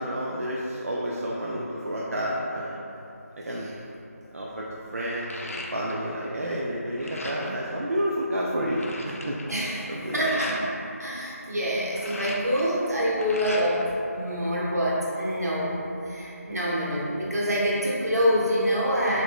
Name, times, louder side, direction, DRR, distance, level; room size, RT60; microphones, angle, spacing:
voice 1, 0.0-2.8 3.4-3.7 4.3-4.7 4.9-9.4 9.6-10.4, equal, 60° right, -5 dB, 0.3 m, -30 dB
sound 1, 3.7-4.0 4.4-6.2 6.5-7.6 8.1-8.2 8.4-10.7 11.7-13.9 14.3-15.2, left 1 dB, 60° left, 0.4 m, -39 dB
voice 2, 9.5-10.7 11.0-19.2, equal, 80° right, -6 dB, 1.0 m, -26 dB
2.9 x 2.5 x 3.5 m, 2.8 s
figure-of-eight pair, 170°, 9 cm